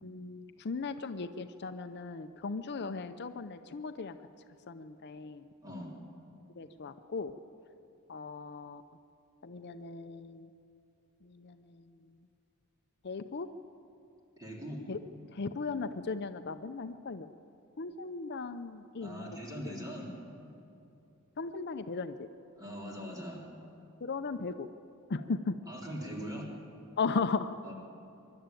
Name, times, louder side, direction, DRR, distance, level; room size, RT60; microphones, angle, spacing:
voice 1, 0.0-4.2 4.7-5.4 6.6-7.4 8.1-8.8 9.4-10.5 11.2-11.9 13.0-13.5 14.9-15.0 15.3-17.3 17.8-19.4 19.7-19.8 21.4-22.3 24.0-24.7 25.1-25.6 27.0-27.5, left 4 dB, 50° left, 9 dB, 0.6 m, -37 dB
voice 2, 5.6-5.9 14.4-14.8 19.0-20.1 22.6-23.4 25.7-26.5 27.6-27.7, equal, 15° right, -2 dB, 3.6 m, -41 dB
24.5 x 11.5 x 9.1 m, 2.8 s
head